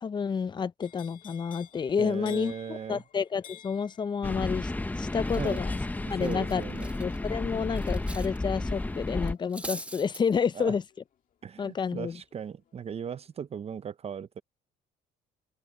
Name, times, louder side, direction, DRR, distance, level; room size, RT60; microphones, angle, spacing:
voice 1, 0.0-4.7 5.0-5.8 6.1-6.6 7.0-10.8 11.6-12.2, left 6 dB, 25° left, 0.5 m, -30 dB
sound 1, 0.8-12.8 13.1-13.5, left 10 dB, 50° left, 2.2 m, -55 dB
voice 2, 2.0-3.0 5.3-5.6 6.2-6.9 10.5-10.8 11.4-14.4, right 7 dB, 35° right, 0.7 m, -38 dB
sound 2, 4.2-9.3, left 2 dB, 10° left, 0.9 m, -32 dB
Cutlery silverware, 4.9-5.0 5.2-8.4 8.6-8.8 9.2-10.2, right 1 dB, 5° right, 1.4 m, -43 dB
open air
cardioid pair, 110°, 17 cm